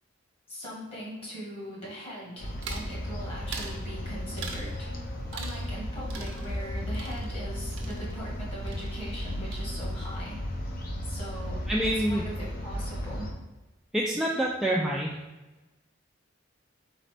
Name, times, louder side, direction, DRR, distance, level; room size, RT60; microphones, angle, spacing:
voice 1, 0.5-4.9 5.3-10.4 11.0-13.3, equal, 30° left, -4 dB, 1.4 m, -40 dB
sound 1, 2.4-13.3, equal, 45° left, 0.7 m, -35 dB
sound 2, 2.6-2.9 3.5-3.8 4.4-4.7 5.3-5.8 6.1-8.4 8.7-9.2 9.5-10.1, right 4 dB, 70° right, 0.7 m, -42 dB
voice 2, 11.7-12.2 13.9-15.1, right 1 dB, ahead, -3 dB, 0.3 m, -26 dB
4.0 x 3.9 x 3.3 m, 1.1 s
head